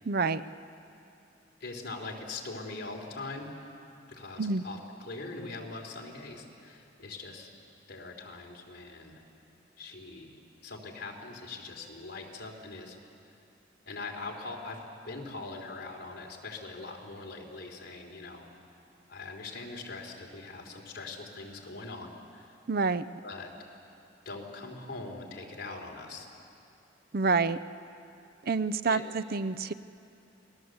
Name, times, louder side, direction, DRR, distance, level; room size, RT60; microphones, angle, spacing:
voice 1, 0.1-0.4 4.4-4.6 22.7-23.0 27.1-27.6 28.4-29.7, right 4 dB, 55° right, 15 dB, 0.6 m, -27 dB
voice 2, 1.6-3.5 4.1-7.5 7.9-9.2 9.8-13.0 13.9-18.5 19.1-22.5 23.2-23.5 24.3-26.3 28.9-29.1, left 3 dB, 55° left, 0 dB, 3.6 m, -42 dB
28.5 x 19.5 x 8.0 m, 2.7 s
head